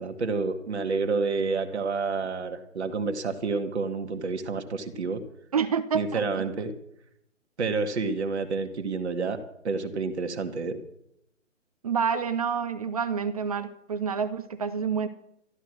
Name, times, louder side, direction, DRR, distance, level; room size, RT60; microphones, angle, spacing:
voice 1, 0.0-5.2 5.9-6.7 7.6-9.4 9.6-10.8, right 4 dB, 55° right, 6 dB, 1.7 m, -29 dB
voice 2, 5.5-6.2 11.8-15.1, right 6 dB, 30° right, 11 dB, 0.7 m, -28 dB
13.5 x 12.5 x 6.3 m, 0.78 s
figure-of-eight pair, 145°, 39 cm